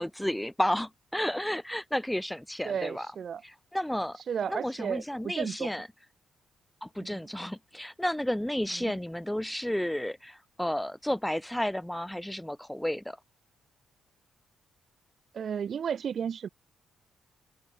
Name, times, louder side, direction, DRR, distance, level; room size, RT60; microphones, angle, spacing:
voice 1, 0.0-3.1 3.4-4.2 4.5-5.9 6.8-13.2, left 1 dB, 5° left, 0.9 m, -32 dB
voice 2, 2.6-3.4 4.3-5.7 7.0-7.2 8.8-8.9 15.3-16.5, right 7 dB, 55° right, 1.8 m, -33 dB
cardioid pair, 90°, 0 cm